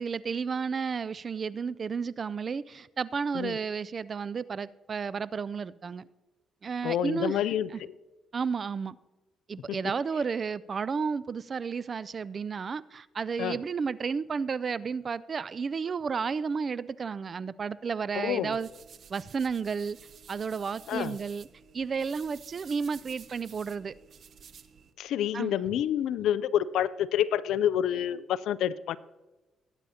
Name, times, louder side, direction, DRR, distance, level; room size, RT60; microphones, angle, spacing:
voice 1, 0.0-6.0 6.6-7.4 7.7-7.8 8.3-9.0 9.5-18.7 19.1-20.0 20.3-21.5 21.7-23.9 25.3-25.5, right 5 dB, 40° right, 0.3 m, -32 dB
voice 2, 6.8-7.7 9.7-9.8 13.4-13.6 18.2-18.5 20.9-21.2 25.0-29.0, left 10 dB, 80° left, 0.4 m, -28 dB
sound 1, 18.5-24.9, right 7 dB, 60° right, 0.7 m, -52 dB
19.5 x 9.0 x 2.8 m
cardioid pair, 90°, 0 cm